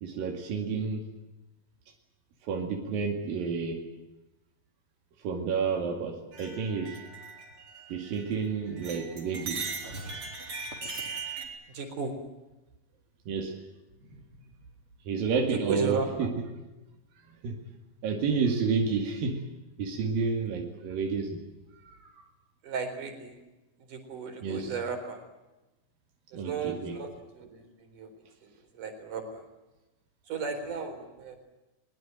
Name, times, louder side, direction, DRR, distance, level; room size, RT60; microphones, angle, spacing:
voice 1, 0.0-1.1 2.4-3.9 5.2-7.0 7.9-9.7 13.3-13.6 15.1-16.3 17.2-17.6 18.0-19.5 19.8-21.4 21.8-22.2 24.4-24.7 26.3-27.0, right 5 dB, 90° right, 3 dB, 4.1 m, -30 dB
sound 1, 6.3-8.5 8.8-11.5, right 4 dB, 40° right, 4.9 m, -39 dB
voice 2, 11.7-12.2 15.5-16.3 22.6-23.4 23.9-25.3 26.3-29.4 30.2-31.4, right 5 dB, 65° right, 6 dB, 5.6 m, -35 dB
23.0 x 22.0 x 9.1 m, 1.0 s
omnidirectional pair, 3.9 m